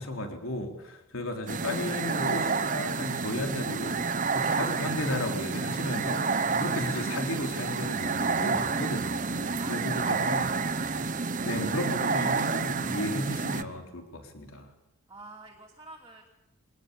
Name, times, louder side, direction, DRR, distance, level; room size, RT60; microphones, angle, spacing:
voice 1, 0.0-10.5 11.4-14.7, left 1 dB, 70° left, 4 dB, 3.8 m, -34 dB
sound 1, 1.5-13.6, right 4 dB, 35° right, 0.9 m, -29 dB
voice 2, 9.6-10.2 15.1-16.3, right 2 dB, 15° right, -2 dB, 2.9 m, -47 dB
24.0 x 19.5 x 8.4 m, 0.94 s
head